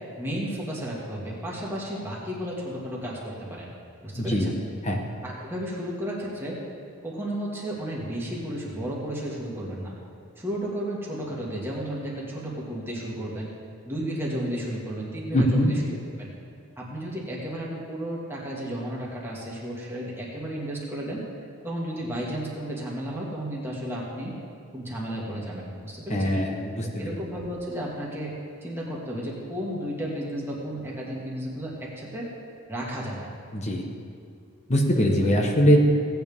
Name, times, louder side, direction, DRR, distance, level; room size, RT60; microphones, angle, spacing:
voice 1, 0.2-3.7 4.0-4.5 5.2-6.6 7.0-10.0 10.4-13.5 13.8-15.8 16.2-16.3 16.8-21.2 21.6-24.3 24.7-26.4 27.0-28.3 28.6-32.3 32.7-33.3, right 1 dB, 10° right, -5 dB, 2.0 m, -33 dB
voice 2, 4.2-4.5 4.8-5.0 15.3-15.7 26.1-27.2 33.5-33.8 34.7-35.8, equal, 30° left, 2 dB, 1.3 m, -22 dB
17.0 x 9.0 x 3.6 m, 2.4 s
head